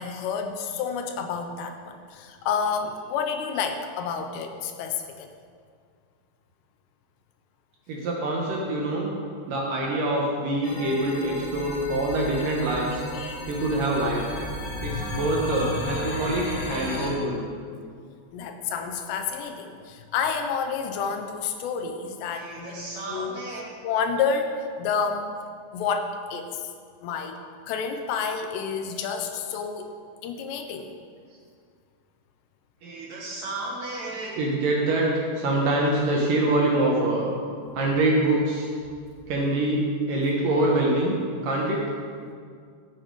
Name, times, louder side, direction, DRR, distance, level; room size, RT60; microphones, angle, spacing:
voice 1, 0.0-5.3 13.1-13.5 14.8-15.2 15.6-15.8 18.3-25.3 25.7-26.7 27.0-27.4 27.7-29.9 30.2-30.9, left 6 dB, 80° left, 6 dB, 2.8 m, -30 dB
voice 2, 7.9-9.2 9.5-13.0 13.5-14.3 14.8-17.4 22.3-23.7 32.8-37.3 37.7-38.7 39.3-41.8, right 2 dB, 70° right, -2 dB, 2.2 m, -25 dB
sound 1, 10.6-17.1, left 2 dB, 65° left, 3.1 m, -34 dB
13.0 x 8.5 x 4.7 m, 2.2 s
omnidirectional pair, 5.1 m